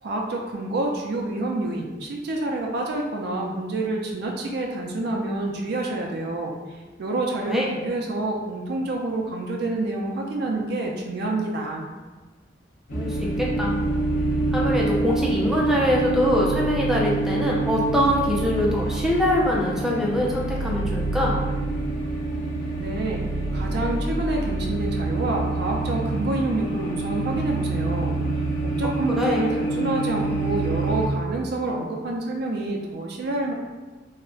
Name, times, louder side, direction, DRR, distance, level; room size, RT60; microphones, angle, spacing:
voice 1, 0.0-6.5 7.0-11.9 22.8-23.2 23.5-28.1 28.6-33.5, right 2 dB, 60° right, 0 dB, 0.4 m, -28 dB
sound 1, 12.9-31.1, right 2 dB, 50° left, 0.5 m, -26 dB
voice 2, 12.9-13.8 14.5-21.4 29.1-29.4, left 1 dB, 5° right, -4 dB, 0.4 m, -23 dB
2.3 x 2.1 x 3.6 m, 1.3 s
head